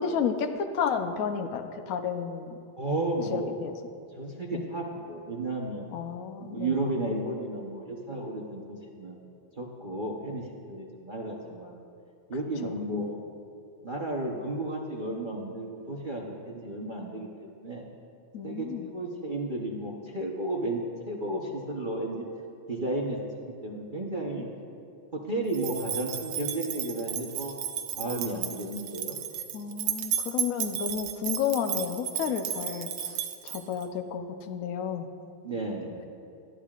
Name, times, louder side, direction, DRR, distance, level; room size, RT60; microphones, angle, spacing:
voice 1, 0.0-2.6 3.3-3.8 4.5-4.6 5.9-6.7 12.6-12.7 18.3-18.9 29.5-35.1, left 7 dB, 65° left, 6 dB, 0.8 m, -32 dB
voice 2, 2.8-3.5 4.2-5.9 6.4-9.2 9.6-11.8 12.3-13.2 13.8-17.9 18.4-22.3 22.7-23.3 23.6-24.5 25.1-27.5 27.9-29.2 35.4-36.0, right 2 dB, 40° right, -3 dB, 0.7 m, -33 dB
sound 1, 25.5-33.9, right 9 dB, 85° right, 1.6 m, -33 dB
19.5 x 12.0 x 2.5 m, 2.5 s
omnidirectional pair, 2.3 m